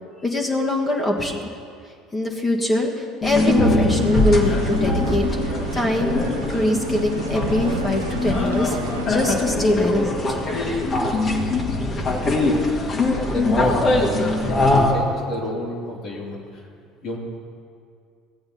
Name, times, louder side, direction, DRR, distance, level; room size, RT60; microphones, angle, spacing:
voice 1, 0.2-1.5 2.1-6.2 6.5-8.8 9.1-10.2, left 1 dB, 20° left, -1 dB, 1.6 m, -23 dB
sound 1, 3.2-14.9, left 2 dB, 40° left, 1.7 m, -22 dB
sound 2, 3.9-9.4, right 3 dB, 90° right, 0.7 m, -31 dB
voice 2, 13.0-13.8 14.1-16.7 17.0-17.2, left 1 dB, 55° left, -3 dB, 2.4 m, -32 dB
15.5 x 8.7 x 4.2 m, 2.3 s
hypercardioid pair, 65°, 0 cm